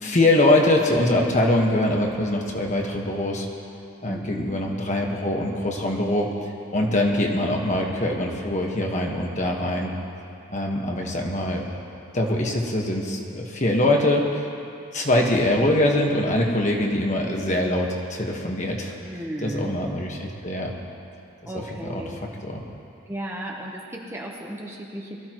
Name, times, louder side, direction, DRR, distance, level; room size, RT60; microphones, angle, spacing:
voice 1, 0.0-3.5 4.0-9.9 10.5-11.6 12.1-14.3 14.9-18.9 19.4-20.7 21.9-22.6, left 1 dB, 35° left, 0 dB, 1.4 m, -23 dB
voice 2, 4.1-4.4 19.0-19.8 21.5-22.2 23.1-25.2, right 1 dB, 10° right, -1 dB, 1.0 m, -35 dB
22.5 x 14.0 x 3.1 m, 2.6 s
head